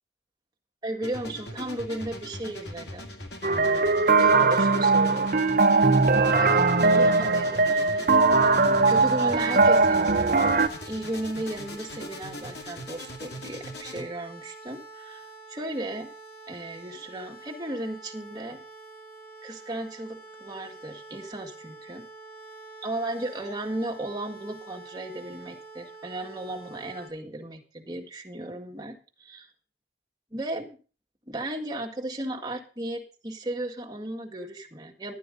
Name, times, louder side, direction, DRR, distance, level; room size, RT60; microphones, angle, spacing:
voice 1, 0.8-3.1 4.2-5.9 6.3-8.1 8.9-16.1 16.5-18.6 19.4-22.0 22.8-29.5 30.3-30.7 31.3-35.2, right 1 dB, 20° right, 0 dB, 1.8 m, -35 dB
sound 1, 1.0-14.0, left 1 dB, 70° left, 2.3 m, -41 dB
sound 2, 3.4-10.7, right 3 dB, 50° right, 0.9 m, -20 dB
sound 3, 8.2-27.1, right 2 dB, 20° left, 3.9 m, -46 dB
12.0 x 9.2 x 5.1 m, 0.36 s
head